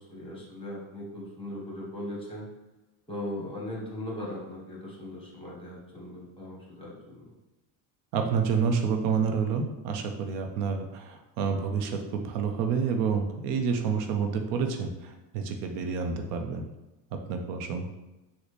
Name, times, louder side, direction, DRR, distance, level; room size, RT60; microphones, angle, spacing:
voice 1, 0.0-2.5 3.1-7.3, left 1 dB, 10° left, -4 dB, 1.2 m, -39 dB
voice 2, 8.1-16.6 17.3-17.9, right 6 dB, 85° right, 5 dB, 0.6 m, -29 dB
3.9 x 2.1 x 3.2 m, 1.0 s
supercardioid pair, 105°, 50 cm